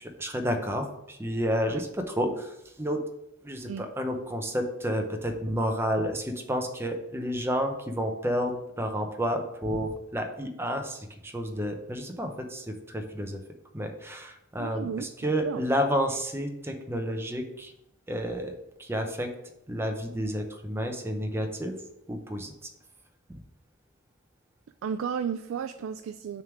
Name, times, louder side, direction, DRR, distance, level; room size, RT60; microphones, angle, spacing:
voice 1, 0.0-3.0 3.4-13.4 13.7-17.7 18.1-19.3 19.7-21.7 22.1-22.5, equal, 10° right, 4 dB, 0.7 m, -30 dB
voice 2, 14.6-15.7 24.8-26.4, right 7 dB, 85° right, 10 dB, 0.3 m, -34 dB
6.4 x 3.5 x 5.9 m, 0.84 s
head